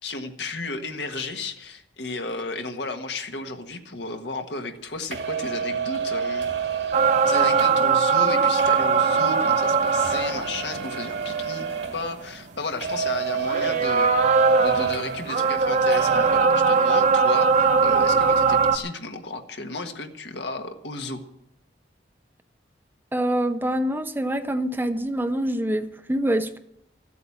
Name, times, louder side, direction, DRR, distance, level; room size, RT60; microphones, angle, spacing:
voice 1, 0.0-6.5 7.3-11.7 11.9-14.1 14.6-21.2, left 3 dB, 70° left, 5 dB, 1.5 m, -33 dB
sound 1, 5.1-12.6 12.8-15.6 15.9-16.4, right 6 dB, 80° right, 2.0 m, -29 dB
sound 2, 6.9-11.0 11.5-11.6 13.4-18.8, right 5 dB, 40° right, 0.9 m, -20 dB
voice 2, 23.1-26.6, right 1 dB, 10° right, 9 dB, 0.6 m, -25 dB
14.0 x 8.1 x 8.5 m, 0.79 s
head